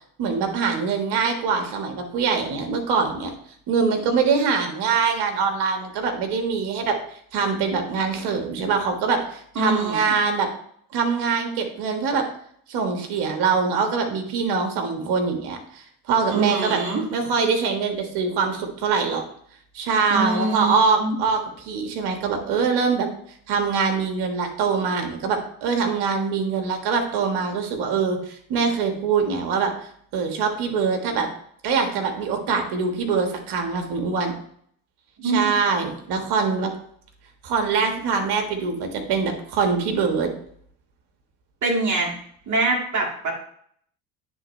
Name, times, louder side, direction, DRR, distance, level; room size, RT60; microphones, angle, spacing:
voice 1, 0.2-3.3 3.7-7.0 7.3-10.5 10.9-12.2 12.7-16.8 17.1-19.2 19.7-23.1 23.5-29.7 30.1-31.3 31.6-34.3 35.2-36.7 37.4-40.3, right 5 dB, 65° right, 4 dB, 1.5 m, -23 dB
voice 2, 9.6-10.1 16.3-17.0 20.1-21.2 35.2-35.5 36.5-36.6 41.6-42.2 42.5-43.3, right 3 dB, 40° right, -1 dB, 2.0 m, -24 dB
9.8 x 3.6 x 3.1 m, 0.63 s
hypercardioid pair, 60°, 43 cm